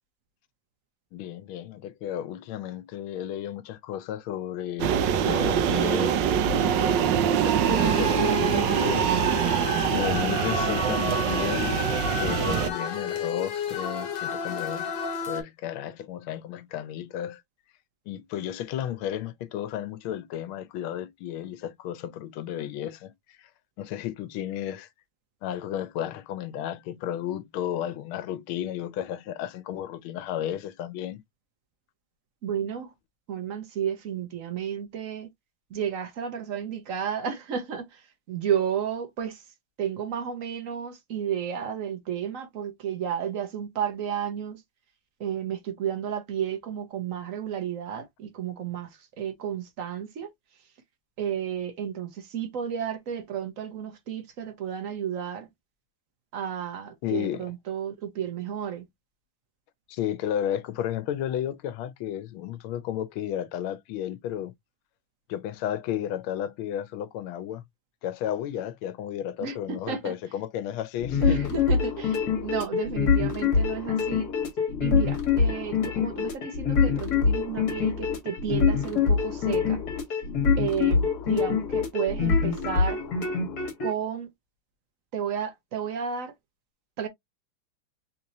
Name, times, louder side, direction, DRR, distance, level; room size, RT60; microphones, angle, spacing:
voice 1, 1.1-11.8 12.1-17.4 18.1-23.1 23.4-23.5 23.8-24.9 25.4-31.2 57.0-57.5 59.9-64.5 65.3-67.6 68.0-71.5, left 11 dB, 85° left, 1.5 m, -33 dB
sound 1, 4.8-12.7, right 8 dB, 75° right, 1.2 m, -24 dB
sound 2, 7.8-15.4, left 6 dB, 70° left, 1.5 m, -32 dB
voice 2, 32.4-32.9 33.3-35.3 35.7-39.4 39.8-44.6 45.2-50.3 51.2-55.5 56.3-58.8 69.4-70.1 71.2-74.3 74.8-79.8 80.6-83.0 83.8-84.3 85.1-86.3 87.0-87.1, right 8 dB, 55° right, 0.9 m, -32 dB
sound 3, 71.0-83.9, left 5 dB, 50° left, 1.8 m, -25 dB
4.0 x 2.9 x 2.6 m
omnidirectional pair, 2.2 m